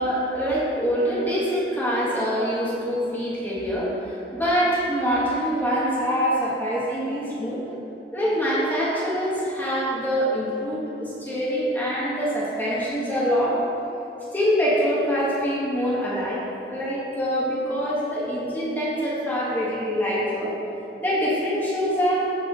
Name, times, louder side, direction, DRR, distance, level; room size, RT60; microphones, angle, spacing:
voice 1, 0.0-7.6 8.1-13.6 14.3-20.5 21.0-22.3, equal, 10° left, -8 dB, 1.9 m, -24 dB
15.0 x 6.1 x 3.3 m, 2.9 s
head